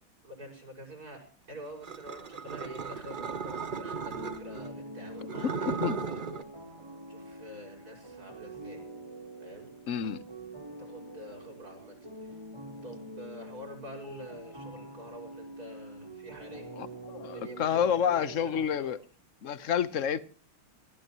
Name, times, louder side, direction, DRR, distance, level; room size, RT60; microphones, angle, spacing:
voice 1, 0.2-5.8 6.0-6.4 7.1-8.8 9.4-9.7 10.8-12.4 12.8-16.7 17.3-19.0, equal, 45° right, 6.5 m, -47 dB
sound 1, 1.8-4.7 5.2-6.4, right 5 dB, 65° right, 0.5 m, -36 dB
sound 2, 4.1-18.7, right 1 dB, 15° right, 3.8 m, -45 dB
voice 2, 9.9-10.2 16.8-19.0 19.4-20.2, left 8 dB, 45° left, 1.2 m, -29 dB
21.0 x 18.0 x 3.1 m
omnidirectional pair, 2.2 m